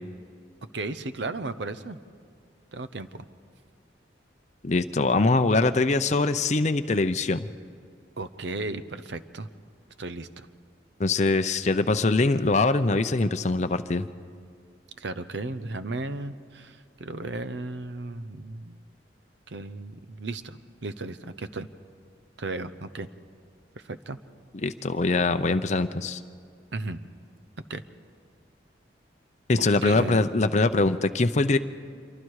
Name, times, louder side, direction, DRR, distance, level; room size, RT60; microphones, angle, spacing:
voice 1, 0.7-2.0 2.7-3.2 8.2-9.5 10.0-10.5 15.0-18.8 19.5-21.7 22.4-23.1 23.7-24.2 26.7-27.0 27.7-27.8 29.6-30.2, right 2 dB, 70° right, 13 dB, 0.8 m, -35 dB
voice 2, 4.6-7.5 11.0-14.1 24.6-26.2 29.5-31.6, left 3 dB, 40° left, 9 dB, 0.6 m, -23 dB
26.5 x 24.0 x 4.8 m, 2.2 s
head